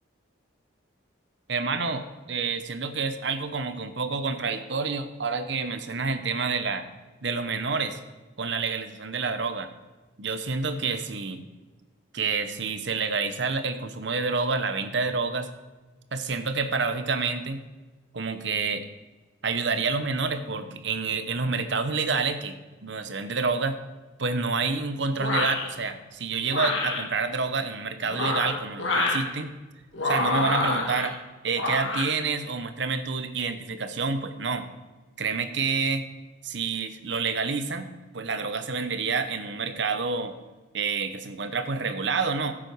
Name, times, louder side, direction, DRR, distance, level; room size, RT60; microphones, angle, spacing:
voice 1, 1.5-6.8 7.2-8.0 8.4-9.7 10.2-11.4 12.1-15.5 16.1-17.6 18.1-18.9 19.4-22.6 22.8-23.8 24.2-29.5 30.0-31.1 31.4-34.7 35.2-36.1 36.4-37.9 38.1-40.3 40.7-42.6, right 4 dB, 65° right, 9 dB, 0.9 m, -28 dB
sound 1, 25.2-25.7 26.5-27.0 28.0-29.2 29.9-31.1 31.5-32.1, left 2 dB, 75° left, 1.8 m, -27 dB
14.5 x 7.6 x 4.7 m, 1.2 s
head